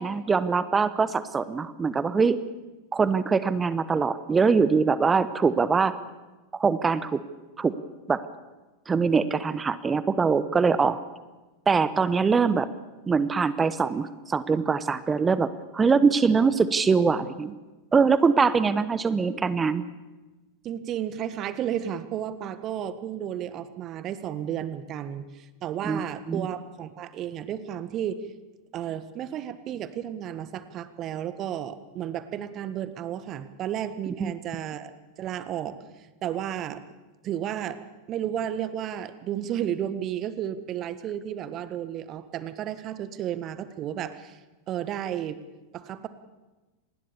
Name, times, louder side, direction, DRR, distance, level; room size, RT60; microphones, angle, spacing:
voice 1, 0.0-2.4 2.9-5.9 6.5-7.2 7.6-7.7 8.1-8.2 8.9-11.0 11.7-12.7 13.1-17.5 17.9-19.8 25.8-26.5 34.2-34.3, right 5 dB, 15° right, 15 dB, 1.1 m, -23 dB
voice 2, 20.6-28.3 28.7-34.9 35.2-36.8 37.2-44.4 44.7-45.4 45.7-46.1, right 10 dB, 35° right, 13 dB, 1.5 m, -33 dB
27.0 x 20.0 x 7.1 m, 1.2 s
figure-of-eight pair, 90°, 0 cm